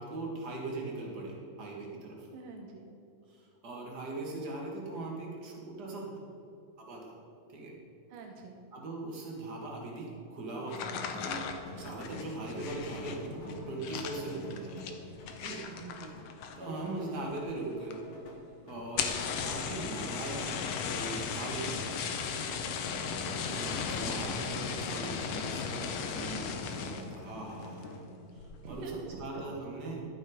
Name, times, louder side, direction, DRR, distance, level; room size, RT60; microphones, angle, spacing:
voice 1, 0.0-2.3 3.3-6.1 6.8-7.2 7.5-7.7 8.7-11.4 11.7-14.9 15.4-15.6 16.6-18.0 18.6-21.9 22.2-22.5 23.5-27.9 28.3-30.0, right 2 dB, 40° right, -2 dB, 1.7 m, -40 dB
voice 2, 2.3-2.9 8.1-8.6 15.7-16.3 23.2-23.8 28.6-29.5, right 4 dB, 80° right, 1 dB, 2.5 m, -46 dB
sound 1, 10.7-16.8 17.1-17.6 17.9-18.0 18.3-18.4 18.8-27.2 27.6-28.0 28.4-28.8, left 6 dB, 90° left, 1.4 m, -36 dB
sound 2, 10.7-28.1, left 2 dB, 65° left, 2.6 m, -48 dB
11.5 x 7.6 x 4.9 m, 2.9 s
omnidirectional pair, 4.0 m